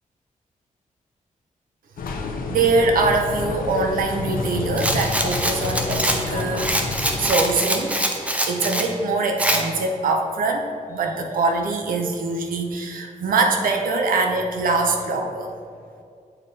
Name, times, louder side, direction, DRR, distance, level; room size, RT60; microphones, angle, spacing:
sound 1, 2.0-7.3, left 3 dB, 85° left, 0.6 m, -29 dB
voice 1, 2.5-6.8 7.2-8.0 8.5-15.5, right 3 dB, 80° right, 3 dB, 0.7 m, -23 dB
Rattle, 4.8-8.9 9.4-9.6, right 1 dB, 10° right, 0.5 m, -24 dB
8.8 x 3.3 x 4.1 m, 2.3 s
wide cardioid pair, 160°, 14 cm